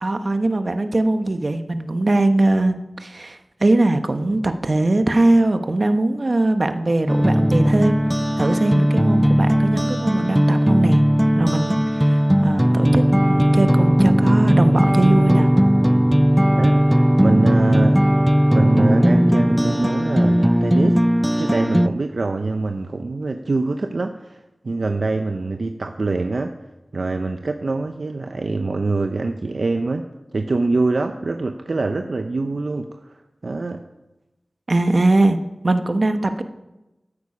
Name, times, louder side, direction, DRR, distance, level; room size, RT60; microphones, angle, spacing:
voice 1, 0.0-8.0 8.4-11.0 11.3-15.5 34.7-35.4 35.6-36.4, right 2 dB, 55° right, 8 dB, 0.9 m, -20 dB
sound 1, 7.1-21.9, equal, 5° right, 0.4 m, -17 dB
voice 2, 16.5-18.1 18.5-21.0 21.4-26.5 26.9-30.0 30.3-33.2 33.4-33.8, right 3 dB, 75° right, 6 dB, 0.6 m, -24 dB
13.5 x 8.4 x 4.9 m, 1.0 s
wide cardioid pair, 50°, 0 cm